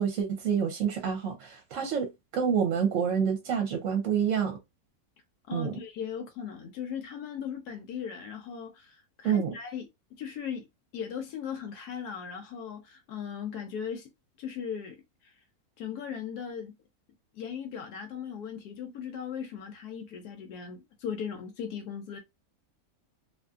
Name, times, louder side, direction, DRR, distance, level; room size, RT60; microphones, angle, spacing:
voice 1, 0.0-4.6 5.5-5.8 9.2-9.6, right 7 dB, 65° right, 0.9 m, -28 dB
voice 2, 5.5-9.9 10.2-10.7 10.9-14.1 14.4-15.0 15.8-16.7 17.3-22.2, left 7 dB, 85° left, 1.1 m, -38 dB
2.6 x 2.5 x 2.3 m
omnidirectional pair, 1.6 m